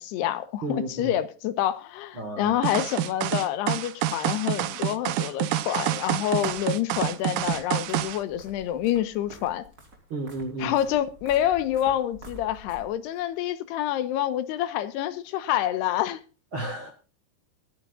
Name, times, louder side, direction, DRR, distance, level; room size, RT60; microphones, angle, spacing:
voice 1, 0.0-9.6 10.6-16.2, left 12 dB, 85° left, 3.2 m, -27 dB
voice 2, 0.6-1.1 2.1-2.6 10.1-10.8 16.5-16.9, right 2 dB, 50° right, 1.7 m, -32 dB
sound 1, 2.6-8.2, right 13 dB, 85° right, 1.7 m, -27 dB
sound 2, 5.9-13.2, equal, 25° right, 3.6 m, -49 dB
20.5 x 10.5 x 2.5 m
omnidirectional pair, 4.6 m